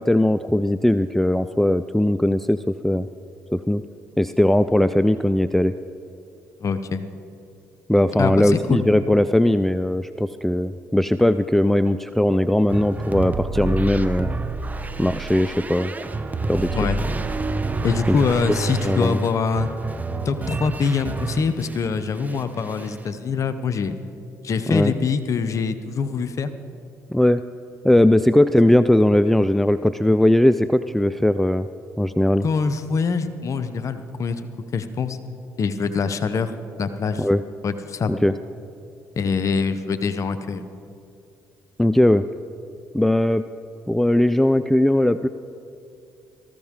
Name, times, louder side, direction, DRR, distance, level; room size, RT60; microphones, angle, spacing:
voice 1, 0.0-3.1 3.5-3.8 4.2-5.7 7.9-14.3 15.0-15.9 16.5-16.9 18.1-18.2 18.8-19.3 24.7-24.9 27.1-27.4 27.8-31.7 32.0-32.5 37.2-37.4 38.1-38.4 41.8-42.3 42.9-43.5 43.9-45.3, left 1 dB, 5° left, 12 dB, 0.4 m, -19 dB
voice 2, 6.6-7.0 8.2-8.8 16.7-17.0 17.8-19.7 20.3-24.0 24.4-26.5 32.4-34.4 34.7-35.2 35.6-36.5 36.8-37.3 37.6-38.1 39.2-40.7, left 5 dB, 50° left, 10 dB, 0.8 m, -24 dB
sound 1, 12.7-21.9 22.2-23.0, right 3 dB, 25° right, 0.9 m, -28 dB
18.5 x 14.5 x 3.7 m, 2.5 s
supercardioid pair, 65°, 7 cm